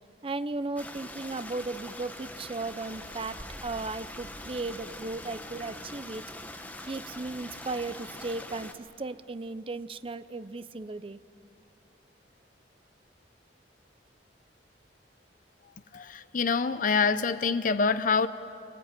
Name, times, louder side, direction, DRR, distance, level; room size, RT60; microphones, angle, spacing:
voice 1, 0.2-6.2 6.8-11.2, right 3 dB, 30° right, 13 dB, 0.6 m, -36 dB
Stream, 0.8-8.7, left 1 dB, 10° left, 1.3 m, -43 dB
voice 2, 15.9-18.3, left 5 dB, 50° left, 12 dB, 0.6 m, -26 dB
24.0 x 20.5 x 9.0 m, 2.6 s
head